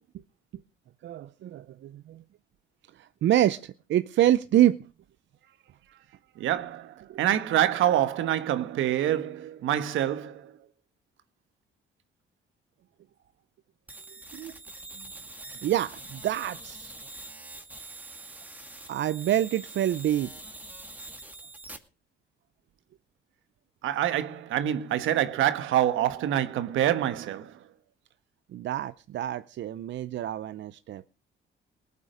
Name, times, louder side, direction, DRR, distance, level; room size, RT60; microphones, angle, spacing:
voice 1, 1.0-2.2 2.9-4.9 5.9-6.0 7.1-7.2 14.3-14.5 15.0-15.1 15.6-16.9 18.9-20.3 28.5-31.0, right 12 dB, 65° right, 0.6 m, -27 dB
voice 2, 6.4-10.5 23.8-27.6, right 11 dB, 85° right, 1.3 m, -26 dB
sound 1, 13.9-21.8, right 2 dB, 10° right, 2.2 m, -44 dB
18.5 x 8.6 x 6.3 m
cardioid pair, 90°, 20 cm